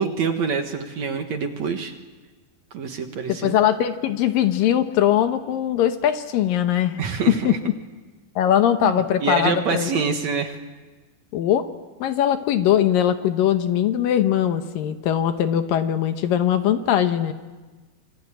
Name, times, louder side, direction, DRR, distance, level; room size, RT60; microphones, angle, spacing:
voice 1, 0.0-1.9 2.7-3.6 7.0-7.6 8.8-10.6, right 5 dB, 55° right, 5 dB, 2.4 m, -26 dB
voice 2, 3.3-7.0 7.3-7.6 8.4-9.9 11.3-11.6 12.0-17.3, left 10 dB, 70° left, 8 dB, 2.6 m, -21 dB
27.0 x 23.0 x 9.0 m, 1.3 s
omnidirectional pair, 4.4 m